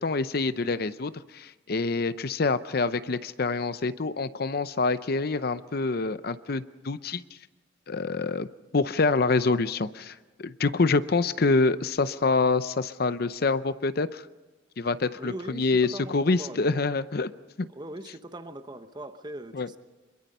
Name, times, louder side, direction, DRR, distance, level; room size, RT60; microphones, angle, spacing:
voice 1, 0.0-7.2 7.9-8.5 8.7-14.2 14.8-17.3 17.6-17.7 19.5-19.7, left 3 dB, 55° left, 14 dB, 0.6 m, -26 dB
voice 2, 15.2-16.9 17.7-19.8, right 1 dB, 25° right, 9 dB, 1.1 m, -40 dB
25.5 x 22.5 x 5.5 m, 1.3 s
head